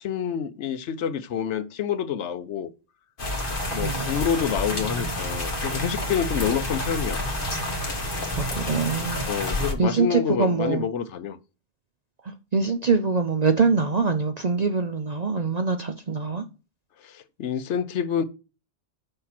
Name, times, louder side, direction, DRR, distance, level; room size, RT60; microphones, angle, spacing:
voice 1, 0.0-2.7 3.7-7.2 9.3-11.4 17.0-18.2, left 8 dB, 80° left, 1.0 m, -28 dB
sound 1, 3.2-9.7, left 1 dB, 50° left, 1.5 m, -29 dB
voice 2, 8.4-9.3 9.8-10.9 12.2-16.4, right 4 dB, 45° right, 0.6 m, -24 dB
6.6 x 5.7 x 4.2 m
omnidirectional pair, 1.2 m